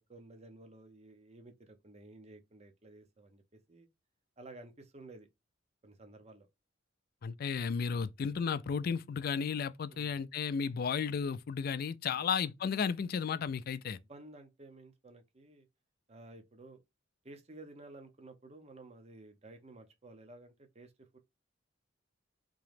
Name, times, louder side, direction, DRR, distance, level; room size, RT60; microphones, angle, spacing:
voice 1, 0.0-3.9 4.4-5.3 5.8-6.5 9.9-10.2 12.1-12.3 13.9-15.7 16.1-16.8 17.2-21.2, right 2 dB, 35° right, 0.7 m, -54 dB
voice 2, 7.2-14.0, left 6 dB, 50° left, 0.3 m, -33 dB
3.7 x 2.9 x 3.3 m
head